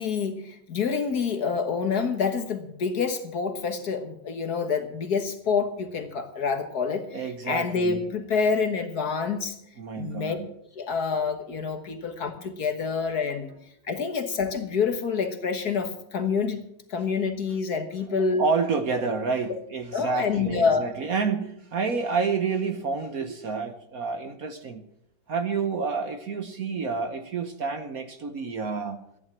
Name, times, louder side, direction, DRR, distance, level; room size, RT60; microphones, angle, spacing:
voice 1, 0.0-9.6 10.0-10.4 10.8-13.5 13.9-16.6 16.9-18.4 19.9-20.9, left 5 dB, 55° left, 7 dB, 1.8 m, -27 dB
voice 2, 7.1-8.0 9.8-10.5 11.9-12.0 13.0-13.1 18.4-24.8 25.3-29.0, right 5 dB, 55° right, 8 dB, 1.3 m, -29 dB
14.0 x 11.0 x 7.3 m, 0.74 s
omnidirectional pair, 2.1 m